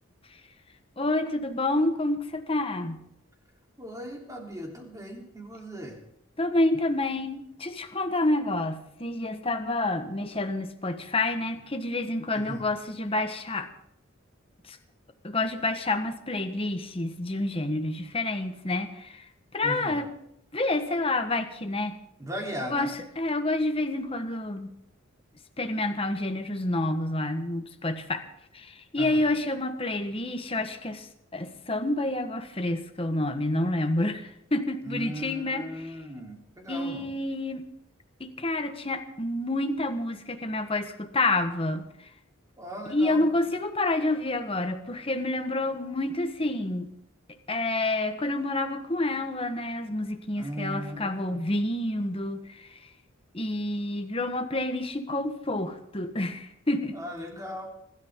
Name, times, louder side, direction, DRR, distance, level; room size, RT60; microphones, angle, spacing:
voice 1, 1.0-3.0 6.4-13.7 14.6-14.8 15.2-19.3 19.5-20.1 20.5-22.0 22.7-24.7 25.6-28.2 28.5-35.9 36.7-37.6 38.2-42.1 42.9-46.9 47.5-52.9 53.3-57.0, left 2 dB, 25° left, 7 dB, 1.4 m, -28 dB
voice 2, 3.8-6.0 12.3-12.7 19.6-20.0 22.2-22.9 29.0-29.2 34.8-37.1 42.6-43.2 50.4-51.4 56.9-57.7, equal, 15° right, 0 dB, 3.5 m, -38 dB
25.5 x 13.0 x 3.8 m, 0.76 s
head